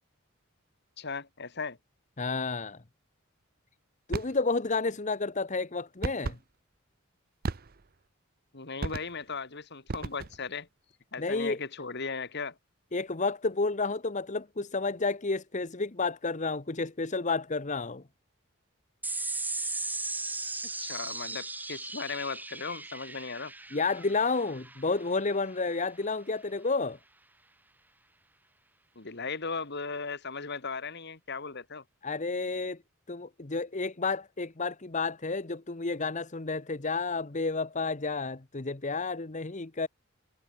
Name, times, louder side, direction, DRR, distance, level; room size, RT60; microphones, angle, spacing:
voice 1, 1.0-1.8 8.5-10.7 11.1-12.6 20.8-23.5 29.0-31.8, left 4 dB, 55° left, 2.2 m, -37 dB
voice 2, 2.2-2.8 4.1-6.4 11.2-11.6 12.9-18.0 23.7-27.0 32.0-32.8 33.1-39.9, left 3 dB, 35° left, 1.0 m, -31 dB
sound 1, 4.1-4.4 6.0-6.4 7.4-8.0 8.8-9.3 9.9-10.5, right 3 dB, 45° right, 0.7 m, -35 dB
sound 2, 19.0-25.8, right 3 dB, 10° right, 3.2 m, -37 dB
head